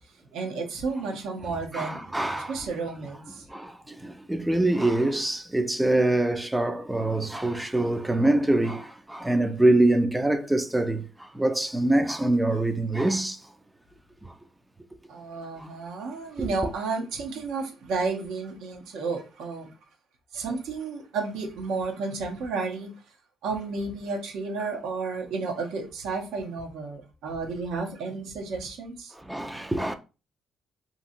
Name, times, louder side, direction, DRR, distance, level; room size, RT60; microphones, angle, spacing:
voice 1, 0.3-2.0 2.5-3.4 15.1-19.7 20.3-22.9 23.4-29.1, right 4 dB, 85° right, 0.8 m, -32 dB
voice 2, 1.7-2.6 3.5-13.5 14.2-14.3 15.6-15.7 16.4-16.5 29.1-30.0, right 1 dB, 10° right, 0.4 m, -25 dB
2.8 x 2.7 x 2.5 m
cardioid pair, 90°, 0 cm